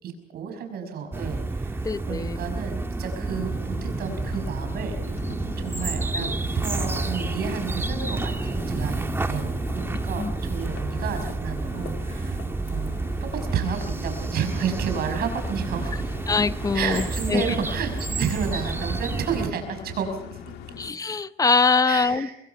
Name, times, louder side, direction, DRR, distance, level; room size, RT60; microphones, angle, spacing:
voice 1, 0.0-5.2 5.6-9.0 9.3-12.4 12.7-12.9 13.2-16.1 16.7-20.4 21.8-22.3, right 7 dB, 65° right, 6 dB, 5.7 m, -31 dB
sound 1, 1.1-19.5, right 2 dB, 15° right, 1.5 m, -30 dB
voice 2, 1.8-2.4 10.2-10.3 16.3-17.5 20.8-22.3, left 4 dB, 20° left, 14 dB, 0.8 m, -23 dB
sound 2, 3.3-20.9, left 9 dB, 80° left, 2.1 m, -42 dB
25.0 x 22.0 x 5.8 m, 0.78 s
cardioid pair, 110°, 17 cm